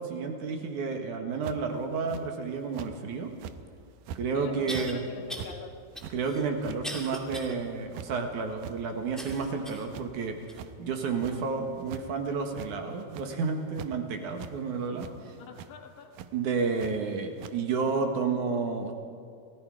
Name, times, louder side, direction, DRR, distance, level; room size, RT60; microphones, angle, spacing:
voice 1, 0.0-3.3 4.1-5.0 6.1-10.4 10.8-15.3 16.3-18.9, right 5 dB, 55° right, 4 dB, 2.7 m, -31 dB
sound 1, 1.4-1.7 2.1-2.2 2.7-2.9 3.3-3.6 4.1-4.2 4.6-4.9 5.3-5.5 6.0-6.2 6.6-6.8 7.3-7.4 7.8-8.1 8.6-8.7 9.1-9.6 9.9-10.1 10.5-10.7 11.2-11.3 11.8-12.0 12.5-12.7 13.0-13.3 13.7-13.9 14.4-14.5 15.0-15.2 15.6-15.7 16.1-16.3 16.8-16.9 17.4-17.5, right 10 dB, 85° right, 1.9 m, -42 dB
sound 2, 3.7-3.8 4.7-4.9 5.3-5.5 5.9-7.5 8.0-8.1 9.2-9.9 10.5-10.6 11.4-11.5, equal, ahead, 0.8 m, -39 dB
voice 2, 4.3-5.7 15.4-16.1, left 5 dB, 60° left, 3 dB, 3.4 m, -43 dB
28.0 x 18.5 x 4.9 m, 2.4 s
omnidirectional pair, 4.9 m